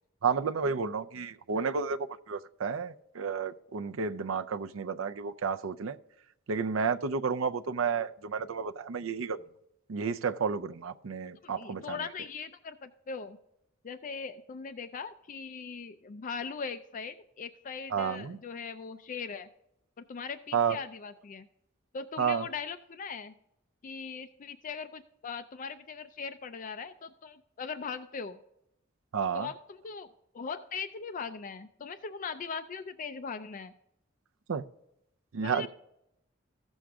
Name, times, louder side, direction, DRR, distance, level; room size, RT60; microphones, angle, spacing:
voice 1, 0.2-6.0 6.5-9.4 9.9-12.0 17.9-18.4 20.5-20.8 22.2-22.4 29.1-29.5 34.5-34.6 35.3-35.7, right 6 dB, 80° right, 0.5 m, -31 dB
voice 2, 11.4-13.4 13.8-19.5 20.0-21.5 21.9-23.3 23.8-28.4 29.3-30.1 30.3-33.7 35.4-35.7, left 5 dB, 40° left, 0.4 m, -40 dB
15.0 x 6.3 x 3.5 m
head